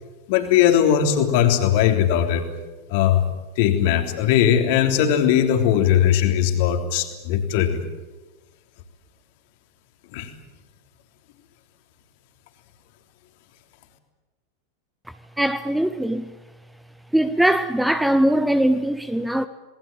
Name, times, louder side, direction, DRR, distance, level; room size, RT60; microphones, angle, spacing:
voice 1, 0.3-2.4 2.9-3.2 3.6-7.8 10.1-10.3, left 10 dB, 50° left, 3.3 m, -19 dB
voice 2, 15.4-16.2 17.1-19.5, right 1 dB, 5° right, 0.9 m, -21 dB
27.5 x 20.5 x 8.9 m
figure-of-eight pair, 90°, 0 cm